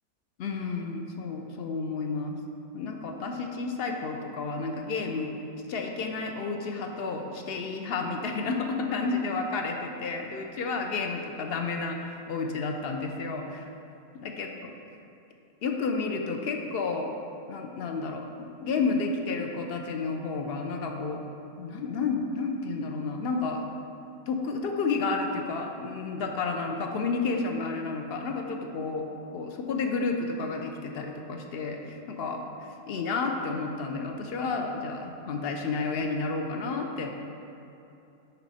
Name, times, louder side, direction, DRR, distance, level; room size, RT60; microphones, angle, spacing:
voice 1, 0.4-2.4 2.7-5.3 5.7-13.7 14.2-14.7 15.6-17.1 17.5-21.2 21.6-23.6 24.3-29.1 29.3-32.4 32.9-37.1, left 4 dB, 65° left, 3 dB, 0.6 m, -31 dB
9.7 x 4.2 x 4.1 m, 2.8 s
omnidirectional pair, 1.6 m